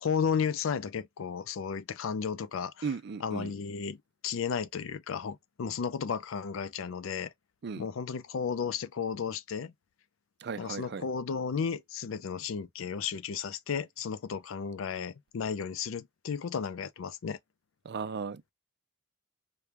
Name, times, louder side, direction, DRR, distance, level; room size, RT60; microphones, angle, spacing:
voice 1, 0.0-2.9 3.2-4.0 4.2-7.3 7.8-9.7 10.6-17.4, left 6 dB, 75° left, 0.4 m, -33 dB
voice 2, 2.8-3.5 7.6-7.8 10.4-11.0 17.8-18.4, right 5 dB, 55° right, 0.4 m, -36 dB
5.0 x 2.2 x 2.9 m
head